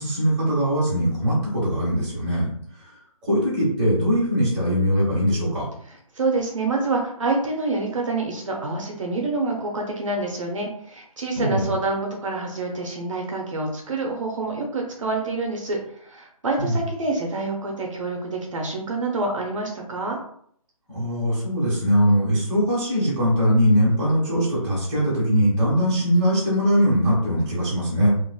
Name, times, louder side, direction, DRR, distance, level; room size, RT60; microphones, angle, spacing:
voice 1, 0.0-2.5 2.8-2.9 3.2-5.7 11.4-11.7 16.6-16.8 20.9-28.1, equal, 15° right, -7 dB, 0.9 m, -21 dB
voice 2, 6.1-20.2, right 3 dB, 60° right, 1 dB, 0.7 m, -27 dB
3.0 x 2.5 x 2.2 m, 0.64 s
hypercardioid pair, 165°, 19 cm